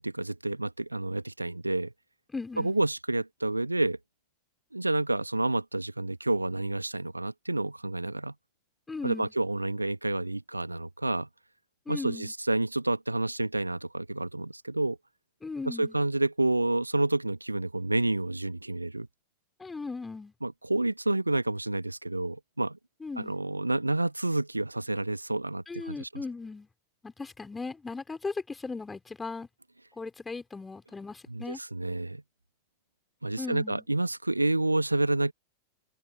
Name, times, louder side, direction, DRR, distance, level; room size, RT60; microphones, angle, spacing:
voice 1, 0.0-1.9 2.6-4.0 4.7-8.3 9.0-11.3 11.9-15.0 15.6-19.1 20.4-22.8 23.2-26.1 31.3-32.2 33.2-35.3, right 2 dB, 85° right, 1.7 m, -29 dB
voice 2, 2.3-2.8 8.9-9.3 11.9-12.3 15.4-16.0 19.6-20.3 23.0-23.4 25.7-26.7 27.0-29.5 30.0-31.6 33.4-33.8, left 4 dB, 10° left, 4.9 m, -37 dB
figure-of-eight pair, 90°, 0 cm